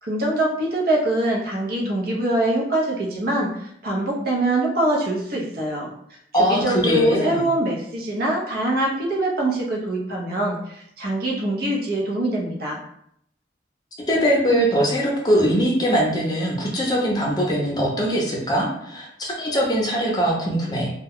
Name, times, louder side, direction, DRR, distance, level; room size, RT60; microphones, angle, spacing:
voice 1, 0.0-5.9 6.4-12.8, right 1 dB, 55° right, -2 dB, 0.7 m, -24 dB
voice 2, 6.3-7.5 14.1-20.9, equal, 25° left, -3 dB, 0.6 m, -21 dB
2.2 x 2.2 x 3.5 m, 0.71 s
head